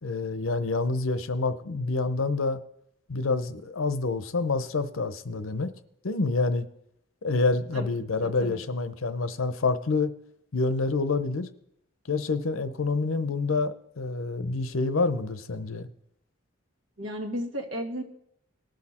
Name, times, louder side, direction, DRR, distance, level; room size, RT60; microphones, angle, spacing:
voice 1, 0.0-2.6 3.1-5.7 6.0-6.7 7.2-10.1 10.5-11.5 12.1-15.9, left 3 dB, 90° left, 0.8 m, -27 dB
voice 2, 8.2-8.6 17.0-18.0, equal, 80° right, 1.8 m, -34 dB
19.0 x 6.5 x 4.3 m
head